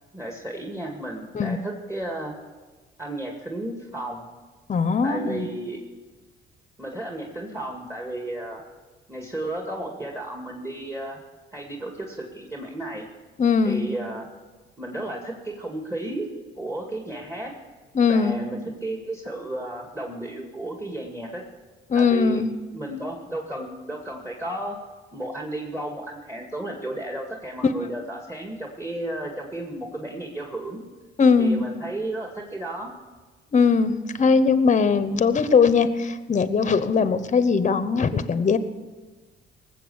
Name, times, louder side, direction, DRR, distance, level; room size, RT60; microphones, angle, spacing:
voice 1, 0.1-2.4 3.0-4.3 5.0-5.8 6.8-8.6 9.1-11.2 11.5-13.1 13.6-14.3 14.8-16.3 16.6-17.5 18.1-21.4 22.0-22.4 22.7-24.8 25.1-30.8 31.4-32.9, right 1 dB, 15° right, 0 dB, 2.2 m, -33 dB
voice 2, 4.7-5.5 13.4-13.9 17.9-18.4 21.9-22.5 31.2-31.6 33.5-38.6, left 5 dB, 35° left, 12 dB, 0.9 m, -20 dB
19.5 x 7.6 x 7.1 m, 1.3 s
cardioid pair, 90°, 20 cm